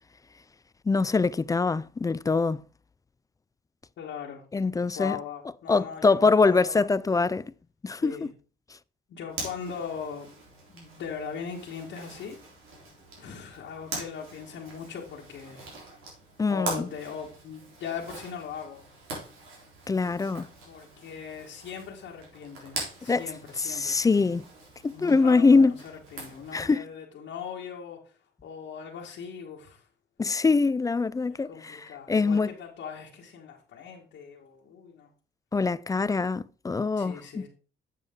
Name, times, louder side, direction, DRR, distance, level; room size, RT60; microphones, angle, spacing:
voice 1, 0.9-2.6 4.5-5.2 5.7-7.5 7.8-8.3 16.4-16.9 19.9-20.5 23.1-23.3 23.6-24.4 24.8-25.8 26.5-26.9 30.2-32.5 35.5-37.5, left 4 dB, 15° left, 0.3 m, -24 dB
voice 2, 4.0-4.4 4.9-6.9 8.0-8.3 9.1-10.3 10.7-12.4 13.2-15.7 16.5-18.8 20.7-24.0 24.9-28.0 28.4-29.9 31.2-35.1 36.9-37.5, left 7 dB, 75° left, 1.6 m, -39 dB
Zipper (clothing), 9.3-26.6, right 3 dB, 85° right, 3.6 m, -43 dB
7.9 x 7.5 x 3.6 m
cardioid pair, 90°, 20 cm